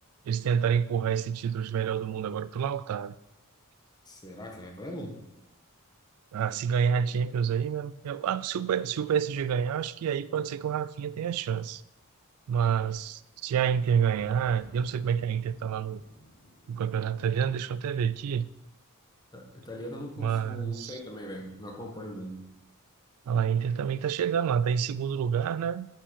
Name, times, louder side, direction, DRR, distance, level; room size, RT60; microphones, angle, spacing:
voice 1, 0.3-3.1 6.3-11.8 12.5-16.0 16.7-18.5 20.2-21.0 23.3-25.9, right 7 dB, 75° right, 0.3 m, -28 dB
voice 2, 4.0-5.2 19.3-22.4, equal, 20° left, 1.3 m, -40 dB
Boom, 14.2-18.9, left 1 dB, 50° left, 1.2 m, -56 dB
5.9 x 5.6 x 6.3 m
head